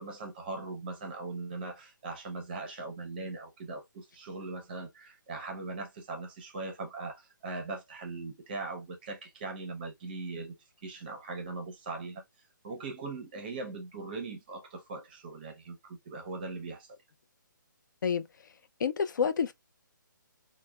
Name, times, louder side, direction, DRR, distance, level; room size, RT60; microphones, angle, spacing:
voice 1, 0.0-10.5 10.8-12.2 12.6-17.0, right 3 dB, 25° right, 0.6 m, -40 dB
voice 2, 18.8-19.5, left 6 dB, 65° left, 0.4 m, -28 dB
3.2 x 2.1 x 2.2 m
hypercardioid pair, 165°, 11 cm